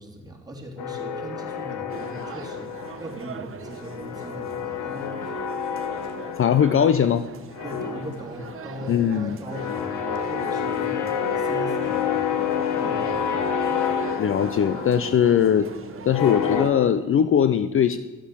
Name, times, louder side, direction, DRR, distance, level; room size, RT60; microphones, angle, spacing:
voice 1, 0.0-5.2 7.6-12.4 12.8-13.6, equal, 10° right, -2 dB, 3.2 m, -39 dB
sound 1, 0.8-3.3 3.6-7.2 7.5-16.7, left 7 dB, 85° left, 1.3 m, -29 dB
sound 2, 1.9-16.7, right 6 dB, 45° right, 1.0 m, -42 dB
voice 2, 6.4-7.2 8.9-9.4 14.2-15.7 16.0-18.0, left 8 dB, 45° left, 12 dB, 0.6 m, -20 dB
13.0 x 7.1 x 6.9 m, 1.3 s
cardioid pair, 90°, 30 cm